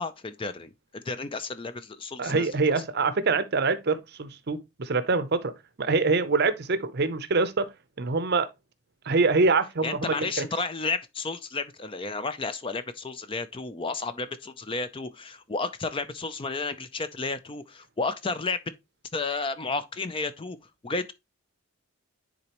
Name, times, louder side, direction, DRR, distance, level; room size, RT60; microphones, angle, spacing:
voice 1, 0.0-2.5 9.8-18.6 19.1-20.6 20.8-21.1, left 3 dB, 25° left, 0.4 m, -32 dB
voice 2, 2.2-5.5 5.8-7.7 8.0-8.5 9.1-10.4, right 4 dB, 45° right, 0.6 m, -25 dB
9.9 x 4.0 x 2.9 m
head